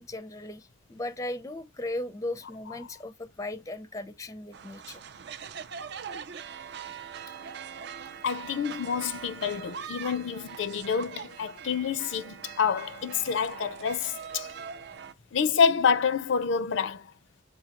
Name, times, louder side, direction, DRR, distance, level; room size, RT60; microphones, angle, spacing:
voice 1, 0.0-5.0, left 1 dB, 15° left, 0.4 m, -37 dB
sound 1, 4.5-15.1, right 7 dB, 60° right, 0.4 m, -42 dB
voice 2, 8.2-14.5 15.3-17.1, left 6 dB, 75° left, 0.4 m, -27 dB
6.9 x 2.6 x 2.9 m
head